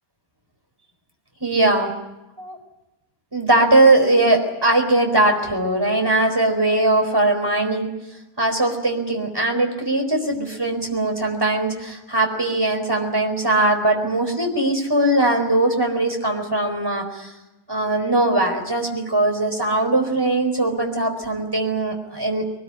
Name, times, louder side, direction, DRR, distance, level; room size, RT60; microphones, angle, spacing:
voice 1, 1.4-1.9 2.4-2.6 3.3-7.9 8.4-17.3 17.7-22.4, right 2 dB, 15° right, 3 dB, 4.4 m, -20 dB
22.5 x 20.5 x 9.9 m, 0.99 s
omnidirectional pair, 1.8 m